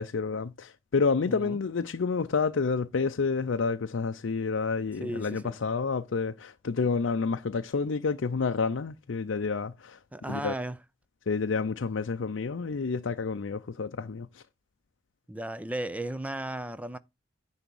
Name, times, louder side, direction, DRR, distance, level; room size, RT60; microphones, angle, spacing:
voice 1, 0.0-10.0 10.3-10.6 11.3-14.4, left 4 dB, 70° left, 0.5 m, -29 dB
voice 2, 1.3-1.6 5.0-5.6 10.1-10.8 15.3-17.0, right 1 dB, 5° right, 0.5 m, -35 dB
10.0 x 3.5 x 6.9 m
head